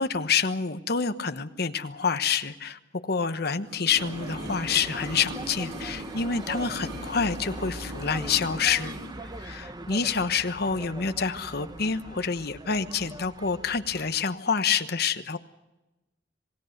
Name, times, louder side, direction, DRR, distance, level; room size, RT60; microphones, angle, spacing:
voice 1, 0.0-8.9 9.4-15.4, left 6 dB, 55° left, 10 dB, 1.1 m, -27 dB
sound 1, 3.6-9.1 9.4-9.5, equal, 75° right, 5.4 m, -40 dB
sound 2, 4.0-14.2, right 1 dB, 20° right, 1.0 m, -41 dB
26.5 x 18.5 x 6.6 m, 1.0 s
head